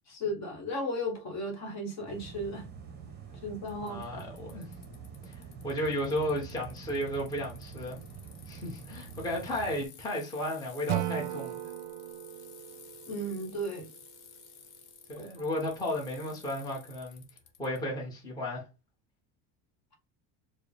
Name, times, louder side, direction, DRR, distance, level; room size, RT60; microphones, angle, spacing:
voice 1, 0.1-2.7 3.4-4.2 13.1-13.9 15.2-15.3, equal, 40° left, 1.1 m, -35 dB
sound 1, 2.1-9.9, right 6 dB, 25° right, 0.8 m, -46 dB
Bicycle, 3.7-17.8, left 8 dB, 55° left, 1.0 m, -54 dB
voice 2, 3.8-4.7 5.3-8.0 8.4-11.6 15.1-17.2 17.6-18.7, left 1 dB, 10° left, 0.9 m, -34 dB
Acoustic guitar / Strum, 10.9-14.0, right 14 dB, 55° right, 0.5 m, -37 dB
4.7 x 2.1 x 3.3 m
cardioid pair, 145°, 43 cm